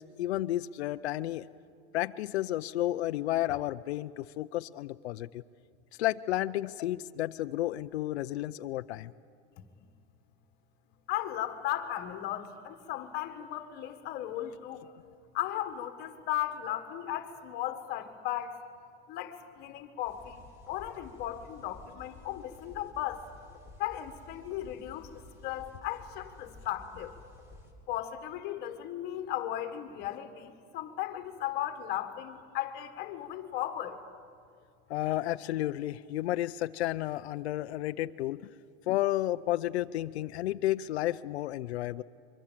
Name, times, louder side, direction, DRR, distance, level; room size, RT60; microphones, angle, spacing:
voice 1, 0.0-1.5 1.9-5.4 6.0-9.1 34.9-38.5 38.9-42.0, left 14 dB, 90° left, 10 dB, 0.7 m, -32 dB
voice 2, 11.1-14.9 15.3-18.6 19.1-23.2 23.8-25.1 25.4-27.1 27.9-34.0, left 12 dB, 30° left, 7 dB, 1.6 m, -36 dB
sound 1, 20.1-27.7, left 2 dB, 10° right, 2.8 m, -53 dB
24.0 x 23.5 x 7.5 m, 2.2 s
supercardioid pair, 165°, 32 cm